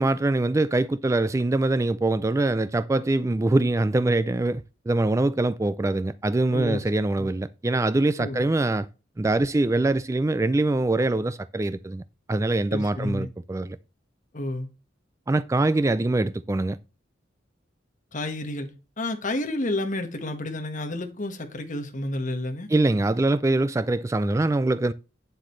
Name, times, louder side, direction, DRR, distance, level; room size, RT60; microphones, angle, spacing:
voice 1, 0.0-8.9 9.2-12.0 12.3-13.8 15.3-16.8 22.7-24.9, right 2 dB, 15° right, 0.3 m, -23 dB
voice 2, 12.7-13.3 14.3-14.7 18.1-18.7 19.0-22.7, left 1 dB, 40° left, 1.6 m, -30 dB
9.2 x 7.6 x 3.2 m
head